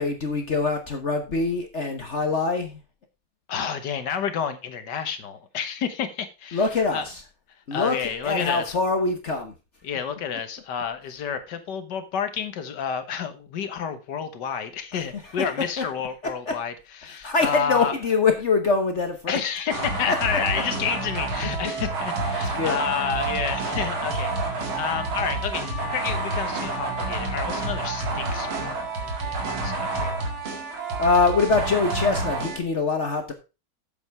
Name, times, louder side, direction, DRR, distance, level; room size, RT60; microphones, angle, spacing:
voice 1, 0.0-2.8 6.5-7.2 7.7-8.0 8.2-9.5 15.8-15.9 16.5-16.6 17.2-19.4 22.5-22.8 31.0-33.3, left 4 dB, 45° left, 1.1 m, -23 dB
voice 2, 3.5-7.1 7.7-8.8 9.8-18.0 19.3-30.1, left 7 dB, 60° left, 1.7 m, -30 dB
sound 1, 19.7-32.6, right 3 dB, 75° right, 2.7 m, -28 dB
7.9 x 7.4 x 4.6 m
omnidirectional pair, 2.2 m